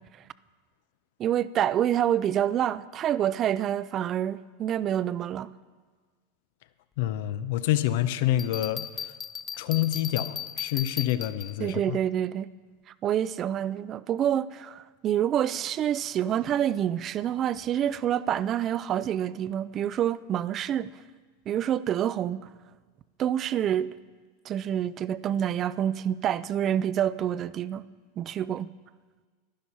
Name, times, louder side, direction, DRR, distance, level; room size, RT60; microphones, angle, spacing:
voice 1, 1.2-5.5 11.6-12.5 13.0-20.9 21.5-22.5 23.2-23.9 24.5-27.9 28.2-28.7, right 10 dB, 35° right, 0.4 m, -27 dB
voice 2, 7.0-9.1 9.6-12.0, left 13 dB, 65° left, 0.7 m, -27 dB
Bell, 8.4-11.7, left 7 dB, 30° left, 0.6 m, -36 dB
11.5 x 10.5 x 5.6 m
hypercardioid pair, 100°, 0 cm